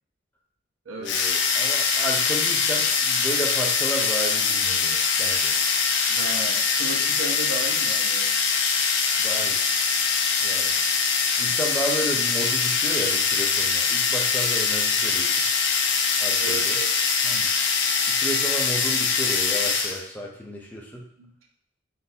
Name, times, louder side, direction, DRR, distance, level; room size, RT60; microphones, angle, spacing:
voice 1, 1.0-5.6 9.2-9.6 10.4-10.8 11.4-15.4 16.2-16.8 17.2-17.5 18.1-21.1, right 1 dB, 10° left, -1 dB, 0.5 m, -33 dB
sound 1, 1.1-20.0, left 5 dB, 60° left, 0.4 m, -23 dB
voice 2, 6.1-8.3 11.4-11.6 16.4-16.9 21.2-21.3, right 3 dB, 90° right, -2 dB, 0.7 m, -35 dB
3.7 x 2.5 x 2.7 m, 0.66 s
head